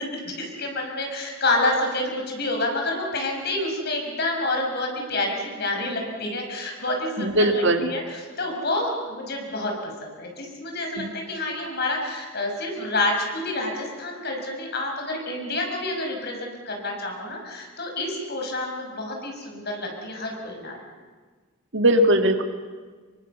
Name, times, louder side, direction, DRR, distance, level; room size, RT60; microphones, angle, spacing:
voice 1, 0.0-20.8, left 2 dB, 50° left, 2 dB, 5.7 m, -28 dB
voice 2, 7.2-7.9 11.0-11.1 21.7-22.4, right 1 dB, 60° right, 6 dB, 2.1 m, -20 dB
25.0 x 24.0 x 7.2 m, 1.4 s
head